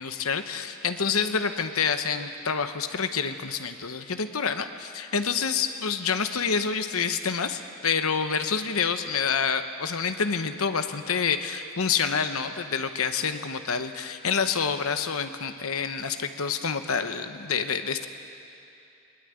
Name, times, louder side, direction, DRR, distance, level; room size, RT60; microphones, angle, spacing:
voice 1, 0.0-18.1, left 6 dB, 75° left, 8 dB, 1.0 m, -27 dB
21.0 x 20.0 x 9.0 m, 2.7 s
head